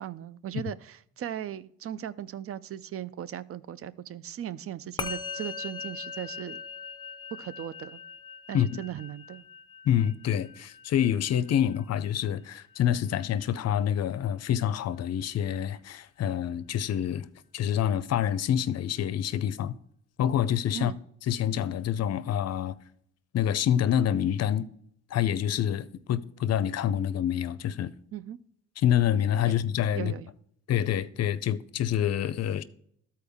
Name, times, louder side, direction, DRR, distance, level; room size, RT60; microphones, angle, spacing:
voice 1, 0.0-6.6 7.4-8.0 8.5-9.5 20.7-21.0 28.1-28.4 29.5-29.6 29.9-30.3, right 11 dB, 50° right, 0.5 m, -38 dB
Musical instrument, 5.0-14.5, left 5 dB, 15° left, 0.7 m, -42 dB
voice 2, 9.9-17.3 17.5-19.8 20.2-20.9 21.3-22.8 23.3-24.7 25.1-27.9 28.8-30.1 30.7-32.6, left 10 dB, 60° left, 0.6 m, -27 dB
13.0 x 4.4 x 3.5 m
cardioid pair, 90°, 30 cm